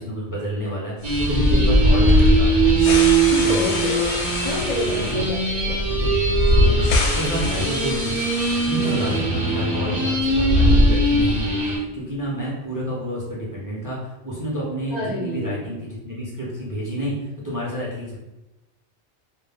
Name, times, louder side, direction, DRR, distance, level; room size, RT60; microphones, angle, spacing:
voice 1, 0.0-2.6 3.4-3.7 5.9-6.1 6.5-8.3 8.6-18.2, right 1 dB, 25° right, -6 dB, 0.4 m, -29 dB
sound 1, 1.0-9.2 9.5-9.6 10.2-11.6, left 1 dB, 80° left, 0.9 m, -21 dB
sound 2, 1.0-11.8, right 3 dB, 50° right, 0.7 m, -22 dB
voice 2, 3.3-5.8 8.8-9.2 14.9-15.7, left 1 dB, 55° left, -6 dB, 0.5 m, -30 dB
2.2 x 2.1 x 3.3 m, 0.99 s
omnidirectional pair, 1.2 m